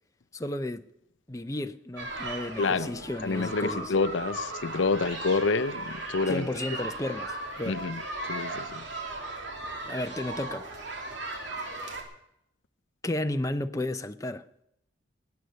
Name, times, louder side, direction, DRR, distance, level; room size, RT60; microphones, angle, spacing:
voice 1, 0.3-0.9 1.3-3.9 6.3-7.8 9.9-10.7 11.8-11.9 13.0-14.4, left 1 dB, 15° left, 0.6 m, -33 dB
sound 1, 2.0-12.0, right 2 dB, 70° right, 2.9 m, -37 dB
voice 2, 2.6-2.9 3.2-6.5 7.7-8.0 8.3-8.8, left 4 dB, 80° left, 0.6 m, -28 dB
19.5 x 9.4 x 6.5 m
head